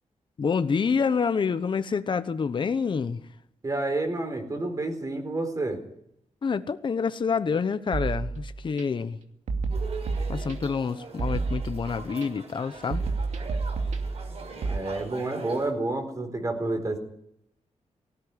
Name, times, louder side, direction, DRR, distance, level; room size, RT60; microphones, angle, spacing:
voice 1, 0.4-3.2 6.4-9.2 10.3-13.1, left 5 dB, 40° left, 0.9 m, -27 dB
voice 2, 3.6-5.8 14.6-17.0, right 2 dB, 30° right, 4.1 m, -29 dB
sound 1, 7.9-8.8 9.5-10.8 11.2-12.3 12.9-14.8, right 4 dB, 85° right, 2.5 m, -30 dB
sound 2, 9.7-15.7, right 4 dB, 60° right, 5.5 m, -42 dB
18.5 x 16.5 x 9.6 m
wide cardioid pair, 130°, 12 cm